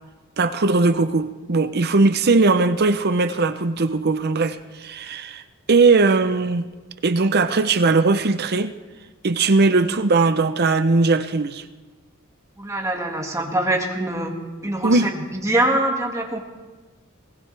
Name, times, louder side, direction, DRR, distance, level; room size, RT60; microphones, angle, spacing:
voice 1, 0.4-5.4 5.7-6.7 7.0-8.8 9.2-11.6 14.8-15.1, right 3 dB, 50° right, 0.7 m, -19 dB
voice 2, 12.6-14.4 14.6-16.4, right 1 dB, 15° right, 2.0 m, -24 dB
20.5 x 20.5 x 3.4 m
head